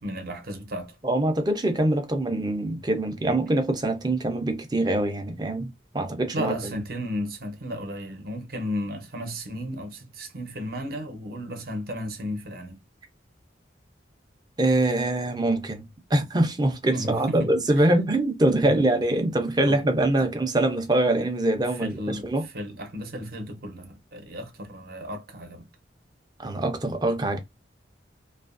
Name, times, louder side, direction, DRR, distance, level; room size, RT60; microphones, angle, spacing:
voice 1, 0.0-1.0 6.3-12.8 16.9-18.0 18.6-18.8 19.7-19.8 21.7-25.6, equal, 55° right, 0.7 m, -34 dB
voice 2, 1.0-6.5 14.6-22.4 26.4-27.4, right 1 dB, 20° right, 0.4 m, -24 dB
2.7 x 2.4 x 2.4 m
head